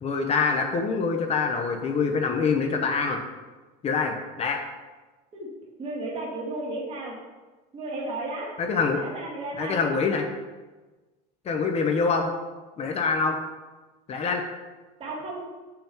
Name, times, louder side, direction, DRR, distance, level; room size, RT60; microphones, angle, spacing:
voice 1, 0.0-3.2 3.8-4.6 8.6-9.0 9.6-10.2 11.5-12.3 12.8-13.4 14.1-14.4, left 5 dB, 30° left, 4 dB, 0.8 m, -25 dB
voice 2, 5.8-7.1 7.7-8.5 8.9-9.8 15.0-15.4, right 2 dB, 30° right, -3 dB, 1.7 m, -33 dB
7.2 x 5.7 x 4.5 m, 1.3 s
supercardioid pair, 130°, 21 cm